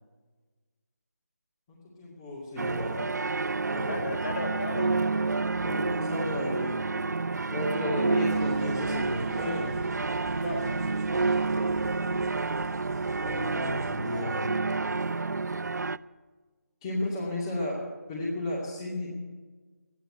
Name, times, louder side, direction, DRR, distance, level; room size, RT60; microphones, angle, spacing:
voice 1, 1.7-3.1 3.7-4.0 5.6-6.8 7.5-9.7 12.1-12.3 13.2-14.5 16.8-17.8 18.1-19.2, left 1 dB, 15° left, -6 dB, 2.3 m, -33 dB
sound 1, 2.6-16.0, right 3 dB, 85° right, 0.4 m, -29 dB
voice 2, 3.8-5.5 10.4-10.8, left 2 dB, 55° left, 4 dB, 3.3 m, -36 dB
sound 2, 8.3-14.0, right 1 dB, 20° right, 1.4 m, -44 dB
13.0 x 10.0 x 9.6 m, 1.4 s
figure-of-eight pair, 165°, 9 cm